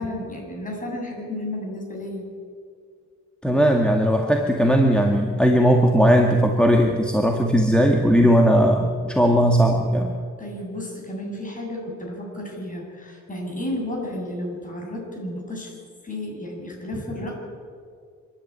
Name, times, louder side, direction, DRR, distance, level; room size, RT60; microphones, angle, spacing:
voice 1, 0.0-2.3 10.4-17.3, left 1 dB, 25° left, -1 dB, 7.9 m, -32 dB
voice 2, 3.4-10.2, equal, 5° left, 1 dB, 2.0 m, -18 dB
26.5 x 11.5 x 9.8 m, 2.2 s
cardioid pair, 90°, 30 cm